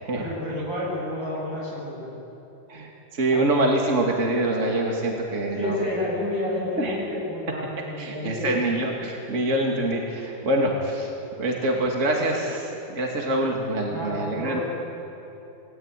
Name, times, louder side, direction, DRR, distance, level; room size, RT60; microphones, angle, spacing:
voice 1, 0.2-2.2 3.3-3.6 5.5-8.6 13.5-13.6 13.9-14.6, left 1 dB, 85° right, -4 dB, 8.9 m, -30 dB
voice 2, 2.7-5.8 6.8-7.0 8.0-11.1 11.4-14.6, right 1 dB, 40° right, 0 dB, 2.7 m, -25 dB
29.0 x 18.5 x 9.2 m, 2.9 s
omnidirectional pair, 2.1 m